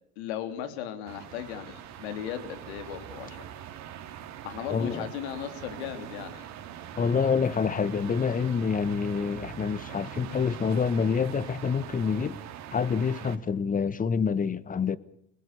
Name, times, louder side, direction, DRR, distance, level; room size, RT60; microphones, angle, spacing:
voice 1, 0.2-3.5 4.4-6.5, left 9 dB, 75° left, 3.6 m, -37 dB
sound 1, 1.1-13.4, right 10 dB, 55° right, 3.1 m, -43 dB
voice 2, 4.7-5.0 7.0-12.4 12.7-15.0, left 6 dB, 25° left, 1.3 m, -27 dB
26.5 x 20.0 x 6.9 m
hypercardioid pair, 85°, 33 cm